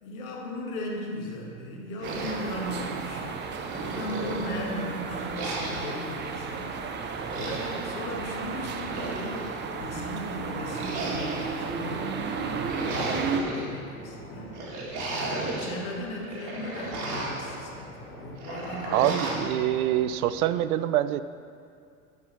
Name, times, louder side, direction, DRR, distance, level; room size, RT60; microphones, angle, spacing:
voice 1, 0.0-6.7 7.3-14.6 15.1-19.7, left 1 dB, 65° left, -1 dB, 2.0 m, -37 dB
sound 1, 2.0-13.4, right 5 dB, 25° right, 0.6 m, -34 dB
sound 2, 2.0-3.1 3.5-4.8 5.3-6.1 7.1-7.9 8.6-9.6 10.7-11.7 12.4-13.7 14.5-15.8 16.2-17.5 18.4-19.5, right 2 dB, 40° right, 2.0 m, -35 dB
sound 3, 3.0-20.5, equal, 30° left, 2.2 m, -47 dB
voice 2, 18.9-21.2, right 12 dB, 75° right, 14 dB, 0.5 m, -25 dB
12.5 x 4.8 x 4.2 m, 2.4 s
hypercardioid pair, 90°, 44 cm